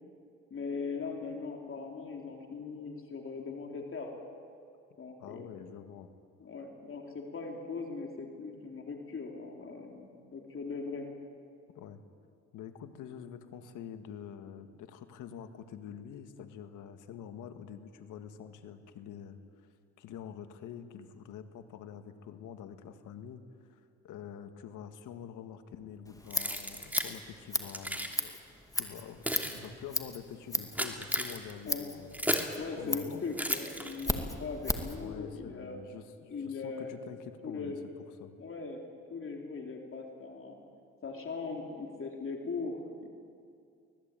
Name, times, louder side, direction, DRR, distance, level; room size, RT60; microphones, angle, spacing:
voice 1, 0.5-4.2 5.0-5.5 6.4-11.1 31.7-31.9 32.6-35.8 36.3-36.9 37.4-37.8 38.4-40.6 41.0-43.1, left 4 dB, 45° left, 2 dB, 3.3 m, -40 dB
voice 2, 5.2-6.1 11.8-12.0 12.5-19.4 20.0-23.4 23.7-28.4 28.8-32.3 32.8-33.2 35.0-37.8 38.2-38.3, left 8 dB, 90° left, 8 dB, 1.8 m, -46 dB
Scissors, 26.1-35.0, left 2 dB, 10° left, 2.2 m, -36 dB
Keys jangling, 26.3-27.1 27.7-28.2 28.9-32.6 33.3-34.3, right 1 dB, 5° right, 2.9 m, -36 dB
25.0 x 19.0 x 9.0 m, 2.3 s
cardioid pair, 90°, 30 cm